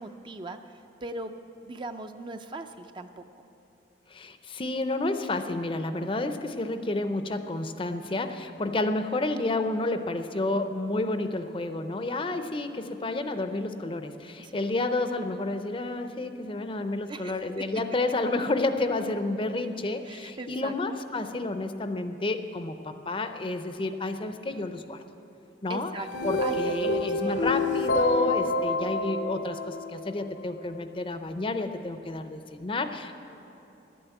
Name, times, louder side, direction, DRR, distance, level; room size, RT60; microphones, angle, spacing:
voice 1, 0.0-3.2 14.4-14.7 17.1-17.7 20.0-20.8 25.7-26.1 26.4-27.4, right 2 dB, 25° right, 7 dB, 0.4 m, -40 dB
voice 2, 4.1-25.0 25.6-25.9 26.2-33.1, left 2 dB, 30° left, 8 dB, 0.5 m, -30 dB
sound 1, 25.9-30.2, left 2 dB, 75° left, 0.8 m, -28 dB
11.5 x 9.3 x 8.1 m, 3.0 s
head